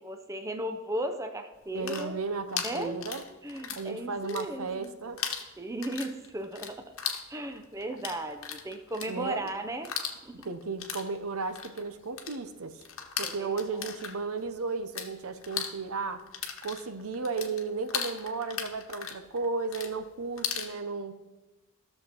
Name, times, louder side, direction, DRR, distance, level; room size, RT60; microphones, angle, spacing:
voice 1, 0.0-2.2 2.6-3.0 3.4-4.9 5.6-6.9 7.3-9.9 10.2-10.5 13.2-13.9, right 1 dB, 15° right, 6 dB, 0.5 m, -36 dB
sound 1, 1.6-3.9 4.2-4.9 5.2-15.1 15.4-20.7, left 8 dB, 65° left, 1.1 m, -37 dB
voice 2, 1.7-3.2 3.7-5.2 9.1-9.5 10.4-12.8 13.2-16.2 16.6-21.2, right 4 dB, 75° right, 10 dB, 0.8 m, -34 dB
14.0 x 6.7 x 4.4 m, 1.1 s
head